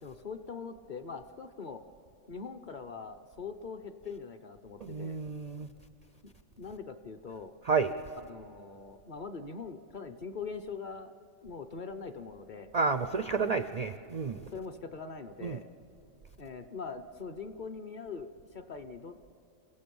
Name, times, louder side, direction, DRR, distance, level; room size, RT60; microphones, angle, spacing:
voice 1, 0.0-1.8 2.3-5.2 6.2-6.3 6.6-7.5 8.3-11.1 11.4-12.7 14.5-15.7 16.4-19.2, left 5 dB, 45° left, 6 dB, 0.8 m, -42 dB
voice 2, 4.8-5.7 7.7-7.9 12.7-14.4 15.4-15.6, right 4 dB, 70° right, 10 dB, 0.3 m, -30 dB
28.5 x 16.5 x 7.0 m, 2.6 s
omnidirectional pair, 1.4 m